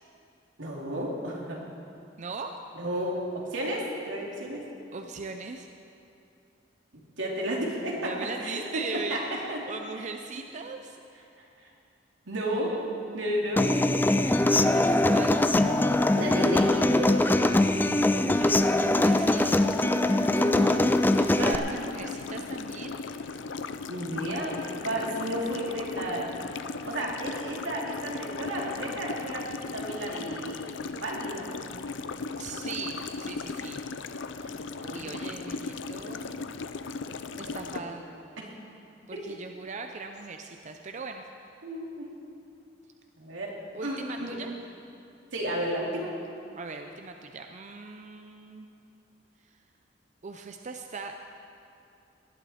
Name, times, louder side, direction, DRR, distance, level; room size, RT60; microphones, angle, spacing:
voice 1, 0.6-1.6 2.7-4.7 7.2-8.8 9.1-9.6 10.0-10.1 11.6-11.7 12.3-12.7 13.1-13.7 16.1-17.2 17.5-17.6 20.3-20.8 21.4-21.6 22.0-22.1 23.9-26.3 26.8-30.7 31.0-31.5 34.4-35.3 37.5-38.0 38.4-38.5 39.1-39.2 41.6-42.1 43.2-43.6 43.8-44.4 45.3-46.1, right 1 dB, 85° right, -2 dB, 2.7 m, -33 dB
voice 2, 2.2-2.6 4.9-5.7 8.0-11.0 12.4-13.2 14.4-15.4 18.3-19.6 21.2-23.0 32.4-33.8 34.8-36.5 37.4-38.0 39.1-41.2 43.7-44.5 46.5-48.7 50.2-51.2, right 4 dB, 40° right, 5 dB, 0.5 m, -39 dB
Human voice / Acoustic guitar, 13.6-21.5, left 1 dB, 10° left, 0.4 m, -22 dB
sound 1, 18.9-37.8, left 4 dB, 75° left, 0.5 m, -37 dB
18.0 x 11.5 x 4.3 m, 2.7 s
head